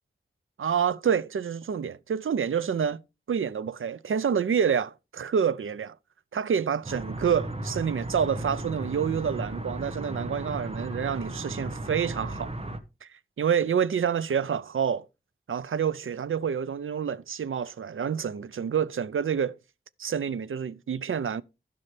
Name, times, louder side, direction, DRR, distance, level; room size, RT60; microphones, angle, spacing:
voice 1, 0.6-3.0 3.3-6.0 6.3-12.5 13.0-13.1 13.4-15.1 15.5-19.6 20.0-21.4, right 7 dB, 85° right, 0.5 m, -28 dB
sound 1, 6.8-12.8, right 1 dB, 30° right, 1.3 m, -35 dB
16.0 x 5.5 x 3.3 m
wide cardioid pair, 80°, 21 cm